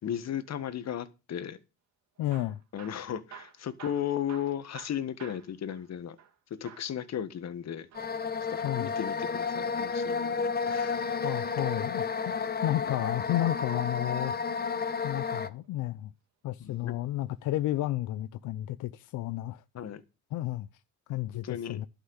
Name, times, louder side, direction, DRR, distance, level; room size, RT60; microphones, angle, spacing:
voice 1, 0.0-1.6 2.7-6.2 6.6-7.9 8.5-10.3 10.6-11.0 16.6-16.9 19.7-20.0 21.4-21.8, left 9 dB, 60° left, 1.6 m, -35 dB
voice 2, 2.2-2.6 8.6-8.9 11.2-12.4 12.6-14.4 15.0-16.1 16.4-19.6 20.3-20.7 21.1-21.9, left 15 dB, 85° left, 0.6 m, -32 dB
Hammer / Drill, 2.2-6.4 6.7-7.0 7.8-9.2 11.0-12.2 13.9-14.4 15.1-15.9 16.6-16.8 17.1-17.2 17.9-18.0, right 8 dB, 65° right, 2.6 m, -52 dB
sound 1, 7.9-15.5, left 5 dB, 30° left, 1.1 m, -31 dB
11.5 x 6.0 x 8.0 m
cardioid pair, 90°, 30 cm